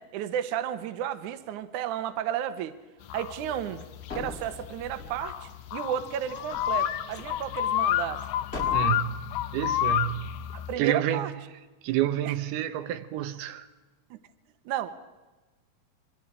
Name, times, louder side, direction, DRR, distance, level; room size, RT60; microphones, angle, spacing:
voice 1, 0.0-2.8 3.1-3.8 4.1-8.2 10.5-11.3 12.3-12.4 14.1-14.2 14.7-15.0, right 10 dB, 65° right, 2.2 m, -32 dB
sound 1, 3.1-10.7, left 12 dB, 85° left, 1.6 m, -30 dB
sound 2, 3.8-3.9 4.1-5.3 6.3-7.4 8.2-8.3 8.5-8.9, left 2 dB, 25° left, 1.4 m, -40 dB
voice 2, 8.7-10.3 10.8-11.3 11.8-13.7, right 12 dB, 85° right, 3.0 m, -29 dB
27.5 x 23.0 x 4.9 m
omnidirectional pair, 4.4 m